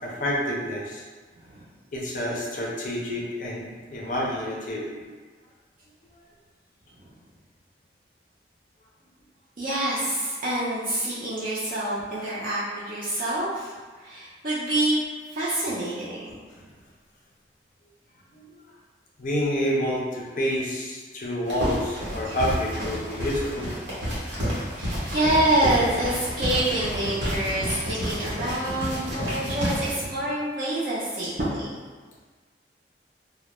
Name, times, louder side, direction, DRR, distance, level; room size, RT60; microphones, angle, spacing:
voice 1, 0.0-1.0 1.9-5.1 18.3-18.6 19.2-23.7, equal, 45° left, -3 dB, 0.4 m, -28 dB
voice 2, 9.6-15.0 15.3-16.7 22.2-22.4 24.3-31.8, right 1 dB, 50° right, -9 dB, 0.4 m, -27 dB
sound 1, 21.5-29.9, equal, 80° right, 0.9 m, -30 dB
2.2 x 2.0 x 2.9 m, 1.4 s
head